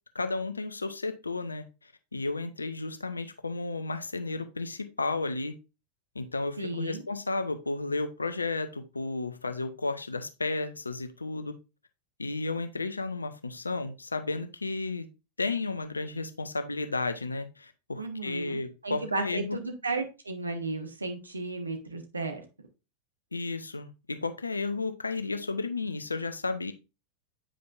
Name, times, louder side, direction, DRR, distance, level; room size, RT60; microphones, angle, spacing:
voice 1, 0.1-1.6 2.1-5.5 6.1-11.5 12.2-15.1 15.4-19.6 23.3-26.7, left 3 dB, 80° left, 9 dB, 0.6 m, -33 dB
voice 2, 6.6-7.0 17.9-22.4, right 3 dB, 80° right, 5 dB, 1.3 m, -34 dB
8.5 x 5.1 x 2.5 m, 0.29 s
figure-of-eight pair, 90°, 0 cm